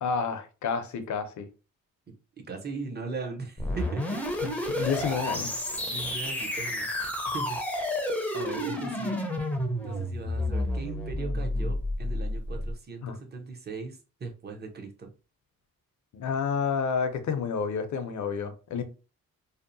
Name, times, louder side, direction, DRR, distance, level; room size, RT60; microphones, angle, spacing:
voice 1, 0.0-1.5 4.4-5.6 13.0-13.1 16.1-18.8, left 6 dB, 60° left, 0.6 m, -30 dB
voice 2, 2.4-4.2 5.9-6.9 7.3-7.6 8.3-9.2 9.8-15.1, right 4 dB, 30° right, 0.7 m, -39 dB
sound 1, 3.6-12.7, left 1 dB, 5° left, 0.6 m, -30 dB
2.7 x 2.0 x 2.6 m
cardioid pair, 80°, 33 cm